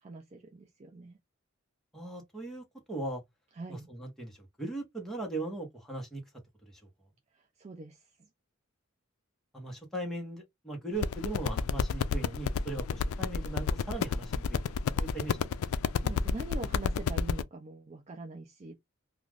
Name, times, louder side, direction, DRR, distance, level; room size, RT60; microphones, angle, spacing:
voice 1, 0.0-1.2 3.6-3.9 7.6-8.0 14.6-14.8 16.0-18.8, right 2 dB, 30° right, 0.4 m, -43 dB
voice 2, 1.9-3.2 3.7-6.2 6.6-6.8 9.5-14.6 14.9-15.4, right 2 dB, ahead, 1.0 m, -39 dB
sound 1, 11.0-17.4, left 6 dB, 90° left, 0.3 m, -30 dB
2.4 x 2.4 x 3.2 m
head